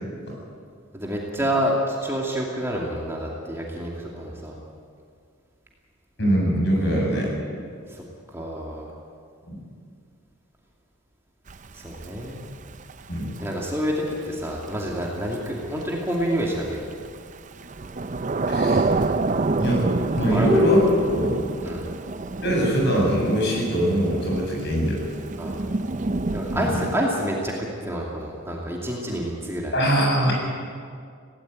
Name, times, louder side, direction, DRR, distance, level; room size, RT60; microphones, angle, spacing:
voice 1, 0.9-4.5 7.9-8.0 8.3-8.9 11.7-12.4 13.4-16.9 20.2-20.5 21.6-21.9 25.4-25.8 26.3-27.5 27.8-29.7, equal, 10° right, -3 dB, 2.6 m, -28 dB
voice 2, 6.2-7.3 9.5-9.6 13.1-13.3 18.5-18.8 19.6-19.8 20.2-20.8 21.1-21.4 22.4-25.0 26.5-26.7 29.7-30.3, equal, 55° left, -2 dB, 7.9 m, -22 dB
Thunder / Rain, 11.5-27.0, right 3 dB, 35° right, 0.6 m, -29 dB
18.0 x 17.5 x 9.2 m, 2.2 s
head